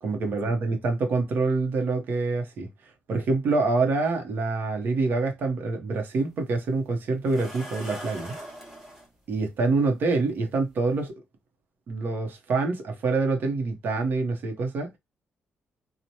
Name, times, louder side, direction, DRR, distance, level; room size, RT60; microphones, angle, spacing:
voice 1, 0.0-2.7 3.1-8.4 9.3-11.1 11.9-15.0, right 3 dB, 60° right, 0.8 m, -26 dB
sound 1, 6.1-6.2 7.3-9.1 10.3-10.4 10.9-11.1, equal, 5° right, 1.1 m, -40 dB
3.0 x 2.1 x 2.7 m
cardioid pair, 120°, 4 cm